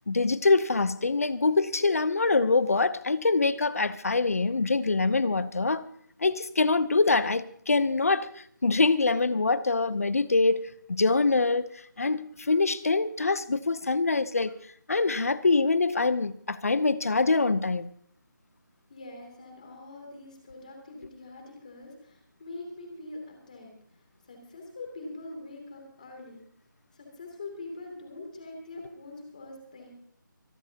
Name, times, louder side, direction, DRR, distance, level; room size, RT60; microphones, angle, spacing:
voice 1, 0.1-5.9 6.2-8.3 8.6-11.7 12.0-14.5 14.9-17.9, left 3 dB, 45° left, 0.7 m, -24 dB
voice 2, 18.9-23.7 24.3-26.4 26.9-29.9, left 2 dB, 20° left, 2.8 m, -43 dB
25.0 x 13.0 x 2.9 m
figure-of-eight pair, 180°, 11 cm